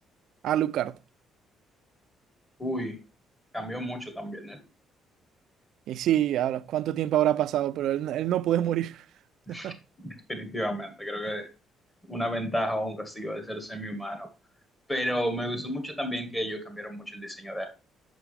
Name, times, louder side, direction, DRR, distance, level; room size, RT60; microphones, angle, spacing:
voice 1, 0.4-0.9 5.9-9.0 9.5-9.8, right 12 dB, 75° right, 0.3 m, -26 dB
voice 2, 2.6-3.0 3.5-4.6 9.5-11.5 12.0-14.3 14.9-17.7, equal, 10° left, 1.5 m, -32 dB
5.9 x 5.4 x 3.4 m
cardioid pair, 95°, 0 cm